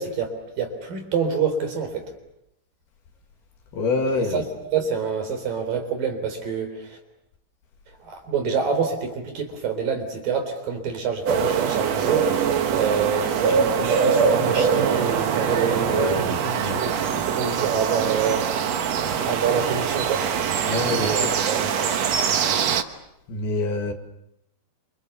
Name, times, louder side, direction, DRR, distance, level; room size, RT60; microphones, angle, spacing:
voice 1, 0.0-2.1 4.1-4.5 4.7-7.0 8.0-12.3 12.7-18.5 19.2-20.2 20.8-21.7, right 6 dB, 55° right, 6 dB, 5.2 m, -27 dB
voice 2, 3.7-4.4 15.8-16.8 20.7-21.3 23.3-23.9, left 3 dB, 65° left, 4 dB, 4.1 m, -26 dB
sound 1, 11.3-22.8, right 7 dB, 70° right, 1.6 m, -23 dB
27.5 x 27.5 x 7.1 m, 0.80 s
omnidirectional pair, 5.1 m